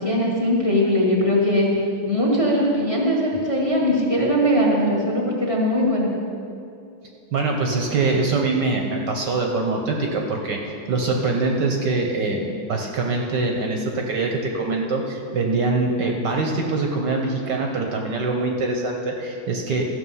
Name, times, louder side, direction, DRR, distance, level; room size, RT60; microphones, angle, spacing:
voice 1, 0.0-1.7 2.0-6.1, equal, 20° left, -3 dB, 1.3 m, -20 dB
voice 2, 7.3-19.9, right 3 dB, 65° right, 1 dB, 1.3 m, -23 dB
14.0 x 6.8 x 5.5 m, 2.6 s
omnidirectional pair, 2.4 m